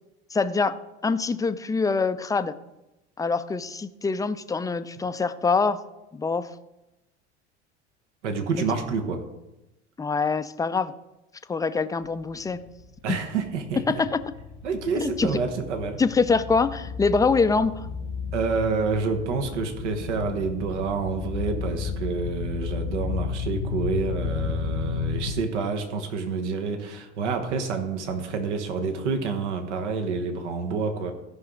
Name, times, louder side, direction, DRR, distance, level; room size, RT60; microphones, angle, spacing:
voice 1, 0.3-0.8 1.0-2.6 3.2-5.8 6.1-6.5 10.0-10.9 11.5-12.6 13.1-13.2 13.9-14.2 15.0-15.3 16.0-17.9, left 4 dB, 10° left, 12 dB, 0.5 m, -24 dB
voice 2, 8.2-9.2 13.0-14.0 14.6-16.0 18.3-31.1, right 5 dB, 75° right, 6 dB, 1.3 m, -28 dB
sound 1, 12.0-25.4, left 6 dB, 80° left, 1.3 m, -33 dB
15.0 x 5.7 x 3.8 m, 0.96 s
hypercardioid pair, 75°, 36 cm